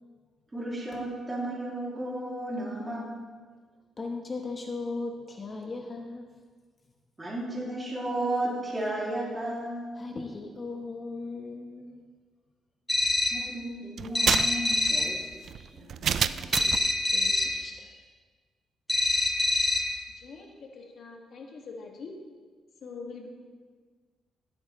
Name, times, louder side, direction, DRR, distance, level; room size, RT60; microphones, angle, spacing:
voice 1, 0.5-3.1 7.2-10.0 13.3-15.2 15.7-16.5, right 1 dB, 15° right, -5 dB, 2.7 m, -34 dB
voice 2, 4.0-6.3 9.9-12.0 16.5-16.7 17.1-18.0, left 3 dB, 30° left, 2 dB, 1.1 m, -38 dB
sound 1, 12.9-13.5 14.1-15.2 16.5-17.6 18.9-20.0, left 2 dB, 10° left, 0.9 m, -26 dB
sound 2, 14.0-16.9, right 8 dB, 60° right, 0.3 m, -29 dB
voice 3, 20.2-22.1 22.8-23.3, left 4 dB, 60° left, 0 dB, 1.9 m, -43 dB
16.5 x 8.1 x 3.2 m, 1.5 s
cardioid pair, 120°, 0 cm